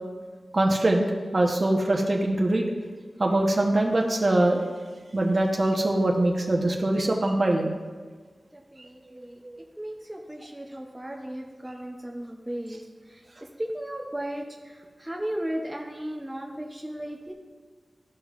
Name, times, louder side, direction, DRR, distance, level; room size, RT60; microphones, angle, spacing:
voice 1, 0.5-1.0 1.3-2.7 3.2-4.6 5.1-7.7 9.5-9.6, right 1 dB, 45° right, 1 dB, 1.0 m, -23 dB
voice 2, 8.8-9.4 9.8-12.8 13.6-14.4 15.0-17.3, right 1 dB, 10° right, -1 dB, 0.8 m, -35 dB
13.5 x 5.3 x 2.5 m, 1.5 s
wide cardioid pair, 80°, 0 cm